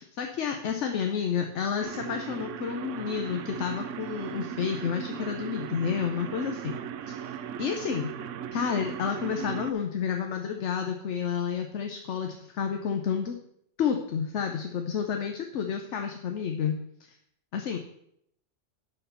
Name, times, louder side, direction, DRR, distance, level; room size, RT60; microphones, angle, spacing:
voice 1, 0.0-6.8 7.1-8.1 8.5-13.3 13.8-16.8 17.5-17.8, left 7 dB, 70° left, 4 dB, 1.1 m, -30 dB
sound 1, 1.8-9.7, right 9 dB, 80° right, 0.9 m, -37 dB
11.0 x 4.4 x 5.6 m, 0.73 s
omnidirectional pair, 1.3 m